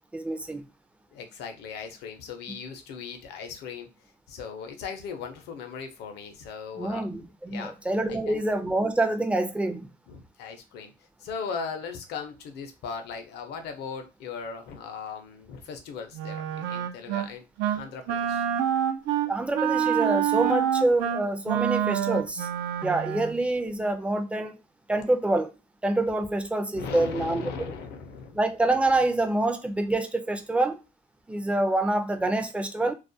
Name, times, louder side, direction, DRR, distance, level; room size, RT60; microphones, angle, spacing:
voice 1, 0.1-0.6 6.8-9.9 19.3-22.5 22.8-24.6 24.9-25.5 25.8-27.4 28.4-30.8 31.3-32.9, right 2 dB, 5° right, 0.4 m, -26 dB
voice 2, 1.1-7.1 7.5-7.8 8.1-8.4 10.1-18.5 26.7-28.4, left 5 dB, 80° left, 0.6 m, -38 dB
Wind instrument woodwind instrument, 16.1-17.3 17.6-17.8 18.1-23.4, right 10 dB, 90° right, 0.4 m, -27 dB
2.3 x 2.1 x 2.6 m
cardioid pair, 110°, 17 cm